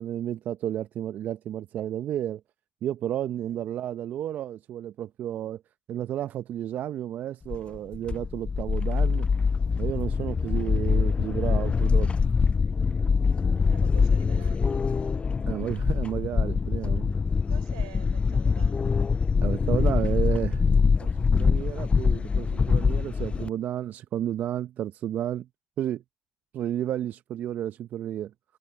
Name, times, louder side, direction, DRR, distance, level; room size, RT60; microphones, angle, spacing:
voice 1, 0.0-2.4 2.8-5.6 5.9-9.3 9.8-12.1 15.5-17.2 19.4-20.6 21.0-25.5 25.8-26.0 26.5-28.3, right 11 dB, 65° right, 0.9 m, -32 dB
sound 1, 7.5-23.5, left 5 dB, 35° left, 0.6 m, -24 dB
voice 2, 13.7-14.7 15.5-15.6 17.5-19.0, right 19 dB, 85° right, 5.5 m, -48 dB
hypercardioid pair, 50°, 3 cm